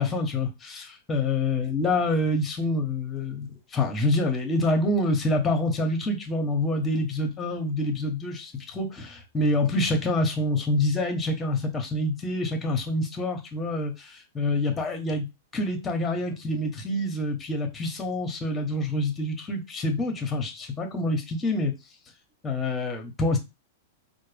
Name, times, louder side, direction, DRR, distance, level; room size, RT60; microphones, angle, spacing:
voice 1, 0.0-15.3 15.5-21.7 22.4-23.4, left 2 dB, 20° left, 1.0 m, -27 dB
4.2 x 2.2 x 3.4 m
hypercardioid pair, 115°, 0 cm